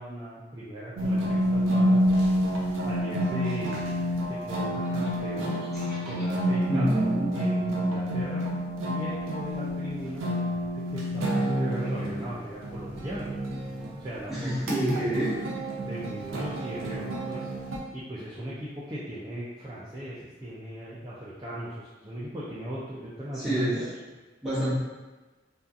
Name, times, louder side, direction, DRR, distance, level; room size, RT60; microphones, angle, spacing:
voice 1, 0.0-2.0 2.8-3.9 4.3-5.6 6.1-6.9 7.3-8.4 8.8-13.3 14.0-15.1 15.8-17.5 17.9-23.9, right 1 dB, 20° right, -9 dB, 0.4 m, -37 dB
sound 1, 1.0-17.8, equal, 80° right, 0.5 m, -28 dB
voice 2, 6.7-7.3 14.3-15.3 23.3-23.8 24.4-24.7, right 1 dB, ahead, -13 dB, 1.1 m, -27 dB
2.6 x 2.3 x 2.4 m, 1.3 s
head